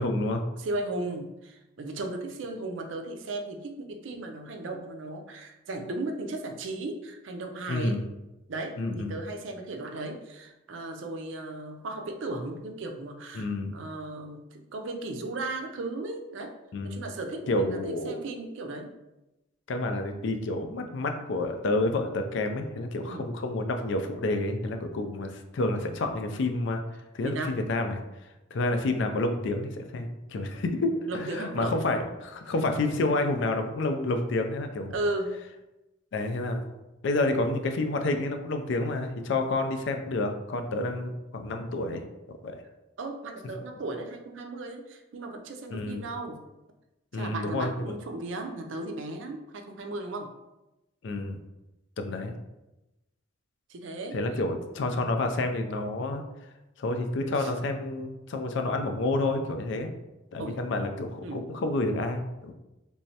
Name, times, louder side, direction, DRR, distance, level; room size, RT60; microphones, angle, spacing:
voice 1, 0.0-0.4 7.7-8.1 8.8-9.1 13.3-13.7 16.7-17.0 17.5-18.2 19.7-26.8 27.1-28.0 28.5-34.9 36.1-36.6 37.0-42.0 42.3-42.6 45.7-46.0 47.1-47.9 51.0-51.4 52.0-52.3 54.1-56.2 56.8-59.9 60.3-62.5, left 2 dB, 65° left, 6 dB, 0.4 m, -29 dB
voice 2, 0.6-8.0 8.5-16.5 16.8-18.9 23.0-23.3 27.2-27.6 31.1-31.8 34.9-35.3 43.0-46.4 47.1-50.3 53.7-54.2 57.3-57.5 60.4-60.6 61.2-61.4, right 2 dB, 70° right, 4 dB, 0.5 m, -36 dB
3.4 x 3.1 x 2.8 m, 0.98 s
head